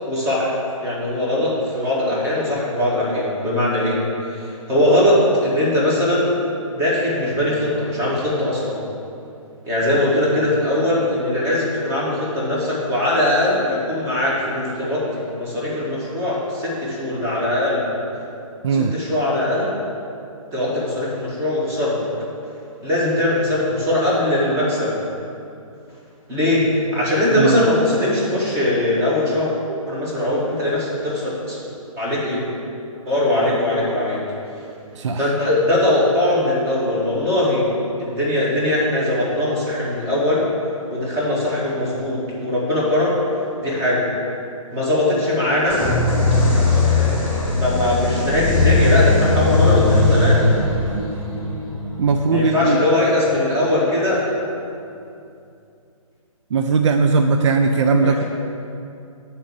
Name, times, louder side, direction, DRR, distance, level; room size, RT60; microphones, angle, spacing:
voice 1, 0.1-4.0 4.3-6.3 6.7-8.8 9.7-17.8 18.7-19.7 20.5-22.1 22.8-25.0 26.3-26.7 26.9-29.5 29.9-31.6 32.0-32.4 33.0-34.2 35.2-37.6 38.0-40.4 40.9-43.1 43.6-44.0 44.7-45.8 46.5-50.5 52.3-54.2 57.9-58.2, left 1 dB, 15° right, -6 dB, 1.5 m, -21 dB
sound 1, 45.7-53.3, left 2 dB, 10° left, 1.3 m, -19 dB
voice 2, 52.0-52.8 56.5-58.2, right 4 dB, 55° right, 5 dB, 0.4 m, -18 dB
6.3 x 4.3 x 6.5 m, 2.6 s
hypercardioid pair, 145°, 18 cm